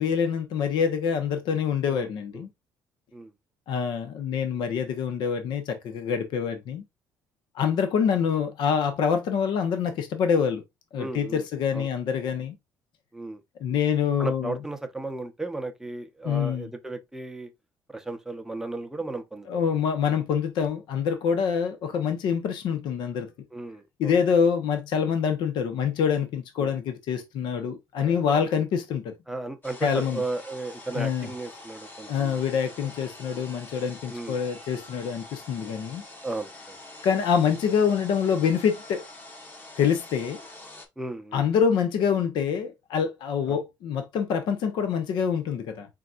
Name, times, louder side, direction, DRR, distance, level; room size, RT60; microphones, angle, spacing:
voice 1, 0.0-2.5 3.7-6.8 7.5-10.6 10.9-12.6 13.6-14.5 16.2-16.7 19.5-23.3 24.0-29.1 29.8-30.2 30.9-31.3 32.1-36.0 37.0-39.0 39.8-40.4 41.3-45.9, left 7 dB, 70° left, 0.8 m, -26 dB
voice 2, 1.8-2.5 3.1-3.3 11.0-11.4 11.7-11.9 13.1-13.4 14.2-17.5 17.9-19.8 23.5-24.2 26.6-26.7 28.0-28.5 29.3-32.4 34.1-34.4 36.2-36.8 41.0-41.5 43.5-43.6, right 2 dB, 5° right, 0.7 m, -35 dB
sound 1, 29.6-40.9, left 2 dB, 25° left, 1.0 m, -45 dB
4.3 x 3.9 x 2.4 m
cardioid pair, 120°, 8 cm